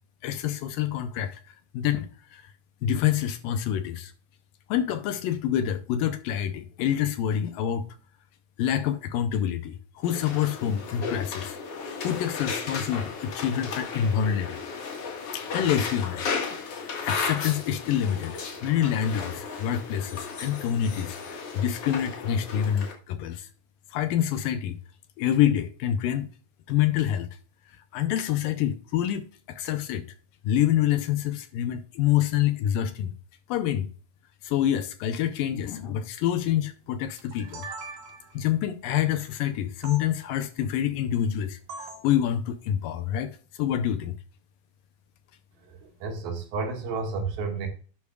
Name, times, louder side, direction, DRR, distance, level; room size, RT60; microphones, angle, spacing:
voice 1, 0.2-1.4 1.7-2.5 2.8-4.1 4.7-7.8 8.6-11.6 12.0-14.6 15.3-16.3 16.8-23.5 23.9-24.8 25.2-26.3 26.7-27.3 27.9-30.1 30.4-33.1 33.5-33.9 34.4-37.7 38.3-43.3 43.6-44.2, left 10 dB, 80° left, 2.2 m, -27 dB
sound 1, 10.0-22.9, left 5 dB, 50° left, 2.2 m, -35 dB
sound 2, 37.2-38.4 39.8-40.0 41.7-42.1, right 3 dB, 90° right, 4.0 m, -40 dB
voice 2, 45.6-47.7, right 4 dB, 70° right, 3.6 m, -32 dB
12.0 x 8.4 x 2.4 m
omnidirectional pair, 4.4 m